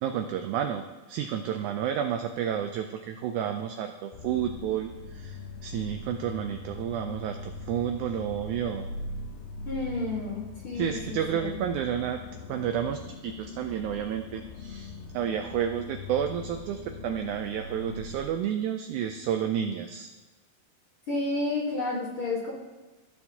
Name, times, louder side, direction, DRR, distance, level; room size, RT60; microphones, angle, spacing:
voice 1, 0.0-8.9 10.7-20.1, right 9 dB, 85° right, 6 dB, 1.7 m, -31 dB
sound 1, 4.1-18.2, left 3 dB, 90° left, 2.6 m, -41 dB
voice 2, 9.7-11.6 21.1-22.5, left 2 dB, 50° left, -4 dB, 1.7 m, -31 dB
15.0 x 6.9 x 2.8 m, 1.3 s
omnidirectional pair, 4.0 m